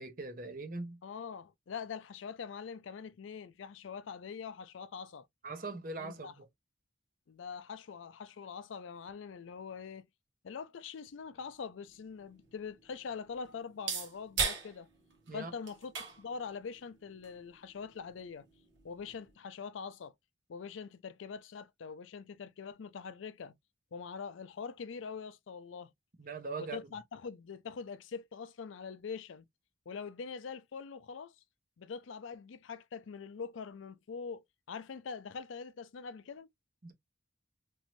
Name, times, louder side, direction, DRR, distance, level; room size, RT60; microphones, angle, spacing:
voice 1, 0.0-1.0 5.4-6.5 15.3-15.5 26.2-26.9 36.8-36.9, right 3 dB, 45° right, 0.8 m, -41 dB
voice 2, 1.0-5.3 6.0-6.3 7.3-10.1 10.4-14.9 15.3-18.5 18.8-20.1 20.5-23.6 23.9-25.9 26.6-29.5 29.9-31.3 31.8-36.5, left 5 dB, 90° left, 0.4 m, -43 dB
sound 1, 11.3-19.3, right 5 dB, 80° right, 1.3 m, -42 dB
3.0 x 2.6 x 3.0 m
head